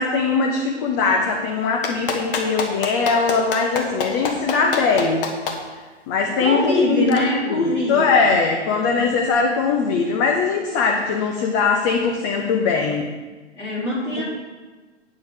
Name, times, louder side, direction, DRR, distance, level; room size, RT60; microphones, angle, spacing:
voice 1, 0.0-5.3 6.1-13.1 14.1-14.2, left 4 dB, 15° left, 2 dB, 0.4 m, -21 dB
Clapping, 1.8-5.6 7.1-7.2, left 5 dB, 50° left, 1.2 m, -25 dB
voice 2, 6.4-8.3 13.6-14.2, left 1 dB, 85° left, -5 dB, 2.9 m, -23 dB
8.9 x 6.2 x 5.0 m, 1.3 s
figure-of-eight pair, 110°, 35 cm